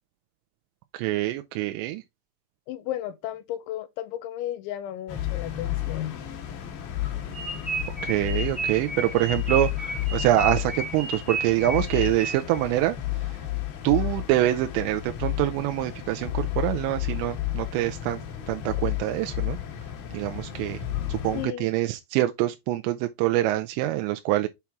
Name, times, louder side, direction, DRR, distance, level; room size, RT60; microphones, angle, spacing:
voice 1, 0.9-2.0 8.0-13.0 13.8-18.2 18.5-19.6 20.1-20.8 21.1-24.5, right 15 dB, 85° right, 2.7 m, -25 dB
voice 2, 2.7-6.2 21.3-21.7, left 12 dB, 90° left, 3.0 m, -34 dB
sound 1, 5.1-21.5, left 13 dB, 65° left, 2.4 m, -32 dB
sound 2, 7.3-12.6, right 3 dB, 20° right, 0.9 m, -32 dB
7.2 x 4.4 x 3.5 m
omnidirectional pair, 5.3 m